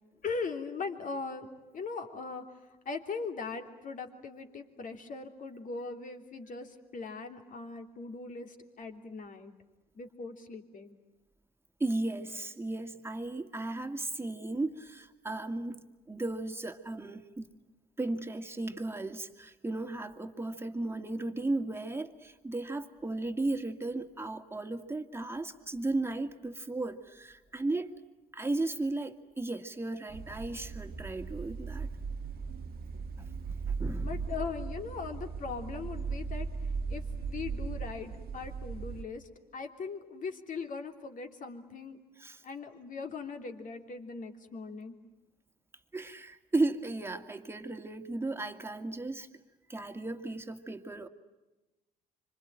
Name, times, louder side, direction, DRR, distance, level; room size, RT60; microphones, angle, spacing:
voice 1, 0.2-1.5 1.7-9.5 9.9-11.0 34.0-36.5 36.9-42.0 42.4-44.9, left 4 dB, 45° left, 5 dB, 3.3 m, -40 dB
voice 2, 11.8-17.5 18.0-27.9 28.3-31.9 33.2-34.2 42.2-42.4 45.9-49.3 49.7-51.1, right 2 dB, 15° right, 6 dB, 2.3 m, -35 dB
sound 1, 30.1-39.0, right 5 dB, 55° right, 1.5 m, -37 dB
26.0 x 25.5 x 9.0 m, 1.1 s
hypercardioid pair, 65°, 19 cm